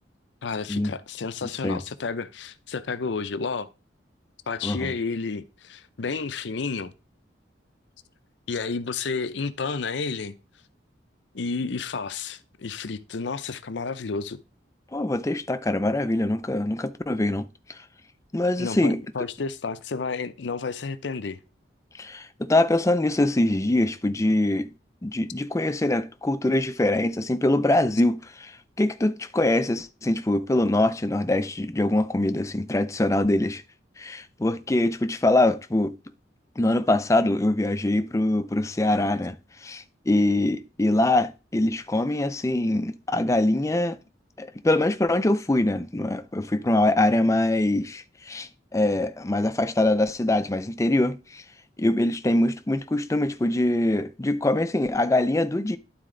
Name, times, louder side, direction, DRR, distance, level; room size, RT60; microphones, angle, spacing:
voice 1, 0.4-3.7 4.5-6.9 8.5-10.4 11.3-14.4 18.6-21.4, left 4 dB, 70° left, 0.6 m, -31 dB
voice 2, 4.6-4.9 14.9-17.8 18.3-19.0 22.0-24.7 25.0-33.6 34.0-36.0 36.6-44.0 44.4-51.4 51.8-55.8, left 1 dB, 15° left, 0.4 m, -23 dB
11.5 x 4.3 x 3.8 m
head